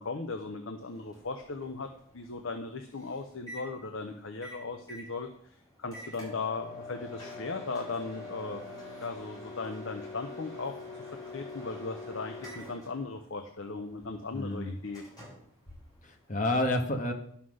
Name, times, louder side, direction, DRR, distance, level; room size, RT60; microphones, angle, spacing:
voice 1, 0.0-1.9 2.1-8.7 9.0-10.8 11.3-15.0, left 3 dB, 65° left, 6 dB, 0.8 m, -37 dB
Microwave oven, 0.8-16.5, left 2 dB, 20° left, 5.2 m, -46 dB
voice 2, 14.3-14.8 16.0-17.1, left 1 dB, 40° left, 4 dB, 1.4 m, -29 dB
11.0 x 5.9 x 6.4 m, 0.64 s
head